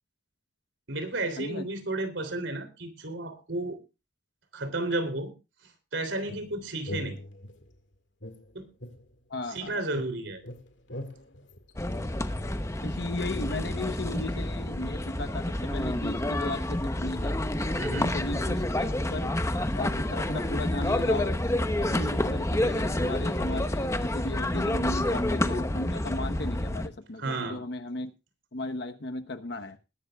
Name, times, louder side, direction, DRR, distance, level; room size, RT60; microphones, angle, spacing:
voice 1, 0.9-3.8 4.5-5.3 5.9-7.2 8.5-8.7 9.5-10.4 17.8-18.1 27.2-27.6, right 2 dB, 90° right, 3.3 m, -32 dB
sound 1, 6.3-7.8 8.2-9.6 10.0-12.5, left 1 dB, 80° left, 2.1 m, -43 dB
voice 2, 9.3-9.8 12.8-17.4 17.9-19.4 19.7-21.4 21.8-28.1 28.5-29.8, left 2 dB, 65° left, 1.1 m, -35 dB
sound 2, 11.8-26.9, left 1 dB, 15° left, 0.9 m, -29 dB
20.5 x 11.5 x 2.4 m
head